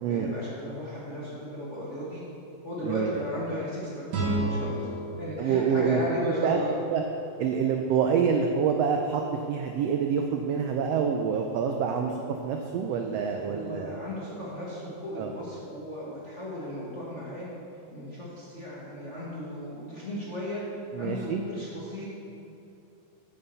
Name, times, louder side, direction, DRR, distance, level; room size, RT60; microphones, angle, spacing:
voice 1, 0.1-2.2 2.6-4.9 5.2-6.7 13.4-17.5 17.9-20.6 21.0-22.1, left 1 dB, 35° left, -7 dB, 1.3 m, -35 dB
voice 2, 2.8-3.2 5.4-6.0 6.4-6.6 6.9-7.0 7.4-9.2 9.5-12.1 12.4-14.0 15.2-15.3 20.9-21.4, right 7 dB, 85° right, 3 dB, 1.4 m, -26 dB
sound 1, 4.1-7.1, right 1 dB, 65° right, 3.0 m, -33 dB
8.8 x 6.9 x 6.8 m, 2.6 s
omnidirectional pair, 3.6 m